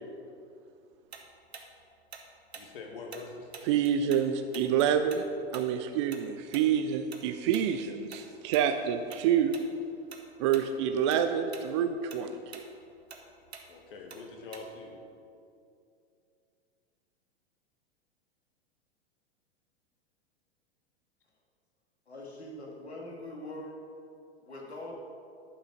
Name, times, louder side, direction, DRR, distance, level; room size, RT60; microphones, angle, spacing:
Tick-tock, 1.1-4.3 4.5-9.2 9.5-9.7 10.1-10.7 11.0-14.9, right 5 dB, 70° right, 1.1 m, -48 dB
voice 1, 2.5-3.5 13.7-15.0, left 3 dB, 55° left, 1 dB, 1.8 m, -44 dB
voice 2, 3.7-5.2 5.5-9.6 10.4-12.6, right 8 dB, 30° right, 8 dB, 0.4 m, -27 dB
voice 3, 22.1-23.8 24.4-25.0, left 1 dB, 75° left, -2 dB, 2.2 m, -42 dB
11.0 x 6.1 x 5.3 m, 2.5 s
figure-of-eight pair, 95°, 33 cm